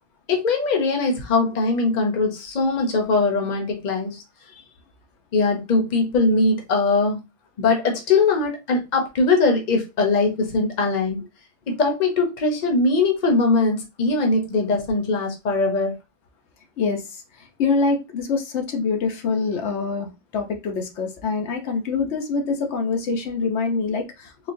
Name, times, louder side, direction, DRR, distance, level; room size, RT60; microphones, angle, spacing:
voice 1, 0.3-4.2 5.3-7.2 7.6-11.3 11.7-16.0, left 3 dB, 45° left, 0.9 m, -21 dB
voice 2, 16.8-24.5, left 4 dB, 85° left, 1.0 m, -25 dB
4.0 x 2.3 x 2.6 m
omnidirectional pair, 1.1 m